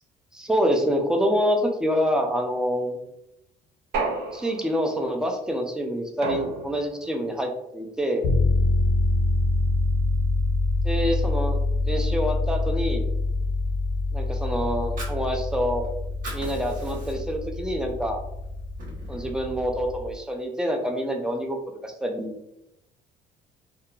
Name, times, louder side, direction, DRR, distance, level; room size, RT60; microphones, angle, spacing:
voice 1, 0.3-3.0 4.3-8.3 10.8-13.1 14.1-15.9 16.3-18.2 19.1-21.6 21.8-22.3, equal, 5° right, 2 dB, 0.4 m, -26 dB
sound 1, 3.9-4.9 6.2-7.0, right 3 dB, 75° right, 0.5 m, -31 dB
sound 2, 8.2-20.1, left 2 dB, 70° left, 0.5 m, -25 dB
Fire, 14.7-15.9 16.1-17.5 17.9-18.0 18.4-19.4, right 1 dB, 55° right, 1.1 m, -40 dB
2.7 x 2.2 x 2.3 m, 0.83 s
cardioid pair, 110°, 17 cm